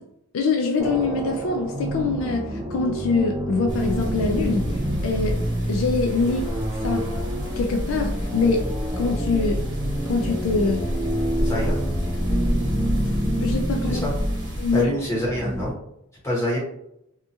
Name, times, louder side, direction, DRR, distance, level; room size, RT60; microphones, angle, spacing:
voice 1, 0.3-5.4 5.7-6.5 6.8-7.1 7.6-8.7 9.0-9.6 10.1-10.8 13.4-14.1 14.6-14.9, left 4 dB, 60° left, 4 dB, 0.3 m, -24 dB
sound 1, 0.8-15.7, right 1 dB, 15° right, 0.4 m, -28 dB
sound 2, 3.7-14.8, equal, 55° right, 1.2 m, -29 dB
voice 2, 11.4-11.8 13.9-14.1 14.7-15.7 16.2-16.6, left 1 dB, 15° left, -6 dB, 1.0 m, -25 dB
2.7 x 2.3 x 2.5 m, 0.78 s
head